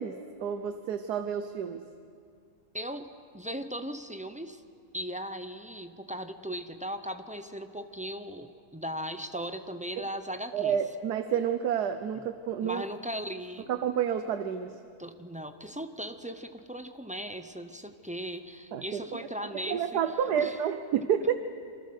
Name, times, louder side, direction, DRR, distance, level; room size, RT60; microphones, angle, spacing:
voice 1, 0.0-1.9 10.5-12.8 13.7-14.8 18.7-19.3 19.7-21.3, right 8 dB, 90° right, 9 dB, 1.5 m, -30 dB
voice 2, 2.7-4.6 4.9-10.8 12.6-13.7 15.0-20.0 20.4-20.6, equal, 5° right, 7 dB, 0.6 m, -38 dB
27.5 x 25.0 x 6.5 m, 2.3 s
omnidirectional pair, 1.7 m